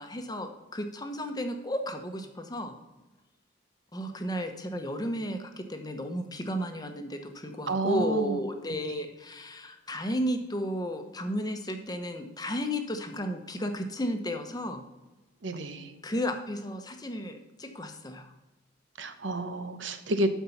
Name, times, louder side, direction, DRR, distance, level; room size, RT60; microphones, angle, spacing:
voice 1, 0.0-2.7 3.9-14.8 16.0-18.3, equal, 20° left, 6 dB, 0.9 m, -33 dB
voice 2, 7.7-8.4 8.9-9.0 15.4-15.9 19.0-20.3, right 2 dB, 75° right, 9 dB, 1.0 m, -30 dB
12.0 x 4.6 x 5.7 m, 1.1 s
head